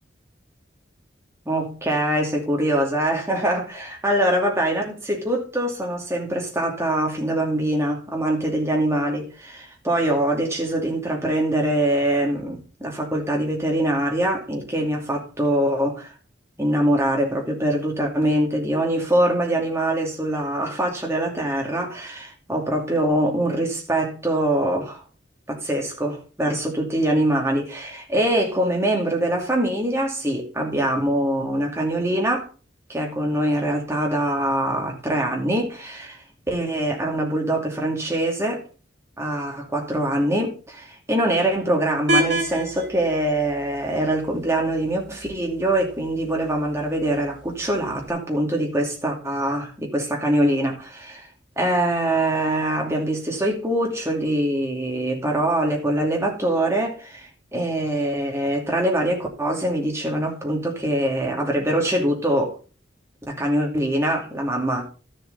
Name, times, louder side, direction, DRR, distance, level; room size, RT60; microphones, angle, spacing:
voice 1, 1.5-16.1 16.6-25.0 25.5-32.5 32.9-36.2 36.5-38.6 39.2-51.3 51.6-57.3 57.5-62.6 63.3-64.8, right 1 dB, 15° right, 2.6 m, -23 dB
sound 1, 42.1-48.1, right 1 dB, 70° right, 2.6 m, -31 dB
12.5 x 7.3 x 4.1 m
head